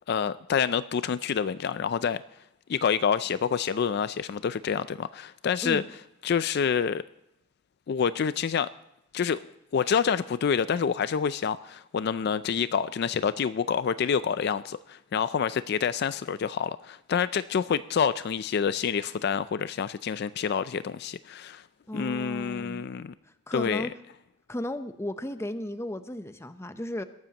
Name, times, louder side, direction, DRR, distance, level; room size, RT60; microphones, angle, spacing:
voice 1, 0.1-2.2 2.7-5.8 6.2-7.0 7.9-8.7 9.1-9.4 9.7-21.6 21.9-23.1 23.5-23.9, left 7 dB, 55° left, 14 dB, 0.4 m, -27 dB
voice 2, 21.9-22.9 23.5-23.9 24.5-27.0, left 1 dB, 15° left, 10 dB, 0.7 m, -34 dB
21.5 x 12.0 x 2.9 m, 0.87 s
head